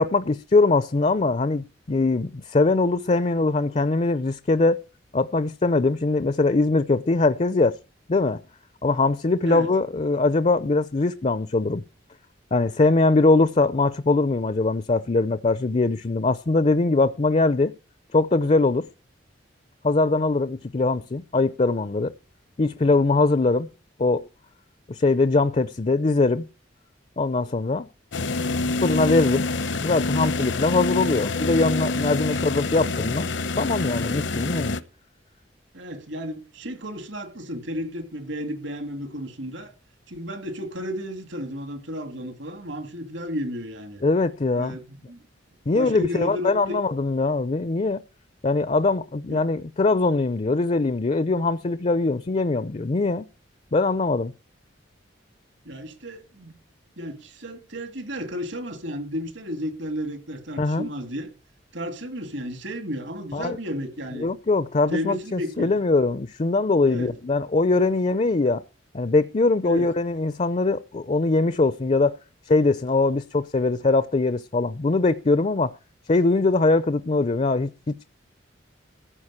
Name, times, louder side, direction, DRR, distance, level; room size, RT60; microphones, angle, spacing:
voice 1, 0.0-4.8 5.1-7.8 8.1-8.4 8.8-11.8 12.5-17.7 18.1-18.9 19.8-22.1 22.6-23.7 24.0-24.3 24.9-26.5 27.2-27.9 28.8-29.5 29.8-33.3 33.6-34.7 44.0-44.8 45.7-48.0 48.4-53.3 53.7-54.3 60.6-60.9 63.3-63.6 64.2-68.6 68.9-72.1 72.5-75.8 76.1-77.7, left 3 dB, 35° left, 0.5 m, -22 dB
sound 1, 28.1-34.8, left 3 dB, 65° left, 0.8 m, -26 dB
voice 2, 35.7-39.7 40.1-44.0 44.6-45.2 45.7-46.8 49.3-49.4 55.6-56.6 57.0-61.3 61.7-64.3 64.9-65.7 66.9-67.1 69.6-69.9, equal, 70° right, 2.4 m, -33 dB
14.5 x 5.0 x 8.8 m
head